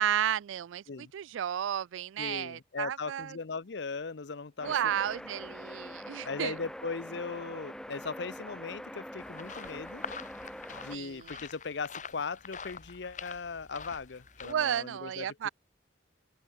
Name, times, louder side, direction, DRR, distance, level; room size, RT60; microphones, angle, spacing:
voice 1, 0.0-3.4 4.6-6.6 10.9-11.4 14.4-15.5, right 10 dB, 85° right, 0.3 m, -32 dB
voice 2, 2.2-4.8 6.2-10.0 10.7-15.5, left 4 dB, 65° left, 0.7 m, -38 dB
sound 1, 4.6-11.0, equal, 5° left, 0.9 m, -44 dB
sound 2, 9.2-14.5, left 5 dB, 40° left, 2.5 m, -46 dB
open air
head